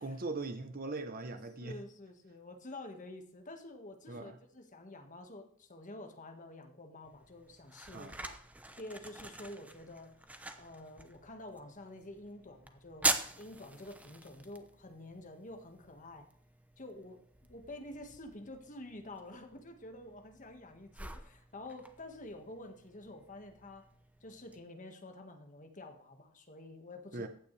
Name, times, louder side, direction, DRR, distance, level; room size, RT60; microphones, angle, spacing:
voice 1, 0.0-1.8 4.1-4.4 7.9-8.2 27.1-27.3, right 3 dB, 45° right, 0.8 m, -40 dB
voice 2, 1.3-8.4 8.8-10.2 10.6-13.1 13.4-16.3 16.8-23.9 24.2-27.3, left 1 dB, 40° left, 1.6 m, -49 dB
sound 1, 7.0-24.6, right 2 dB, 5° right, 0.8 m, -43 dB
15.0 x 9.5 x 3.3 m
head